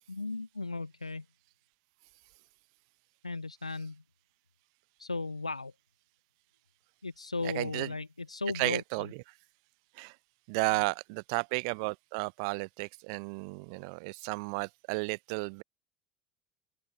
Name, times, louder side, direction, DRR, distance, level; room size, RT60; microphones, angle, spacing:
voice 1, 0.1-1.2 3.2-4.0 5.0-5.7 7.0-9.1 10.7-10.8, left 3 dB, 85° left, 1.1 m, -36 dB
voice 2, 7.4-7.9 8.5-9.1 10.0-10.1 10.5-15.6, right 34 dB, 55° right, 0.7 m, -33 dB
open air
figure-of-eight pair, 70°, 3 cm